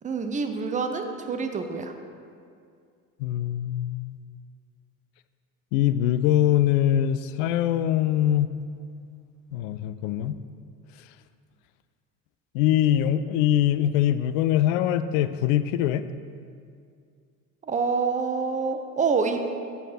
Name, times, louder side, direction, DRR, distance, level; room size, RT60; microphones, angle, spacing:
voice 1, 0.0-1.9 17.6-19.4, right 5 dB, 15° right, 6 dB, 0.6 m, -27 dB
voice 2, 3.2-4.2 5.7-8.6 9.5-10.4 12.5-16.1, left 11 dB, 55° left, 13 dB, 0.5 m, -23 dB
7.0 x 6.9 x 4.1 m, 2.2 s
figure-of-eight pair, 55°, 46 cm